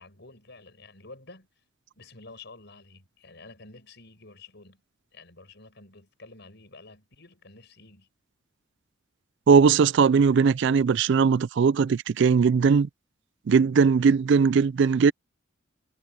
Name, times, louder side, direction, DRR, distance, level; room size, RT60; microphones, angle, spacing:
voice 1, 0.0-1.5 1.9-4.8 5.1-8.1, left 3 dB, 60° left, 6.8 m, -49 dB
voice 2, 9.5-12.9 13.5-15.1, right 5 dB, 65° right, 0.4 m, -19 dB
head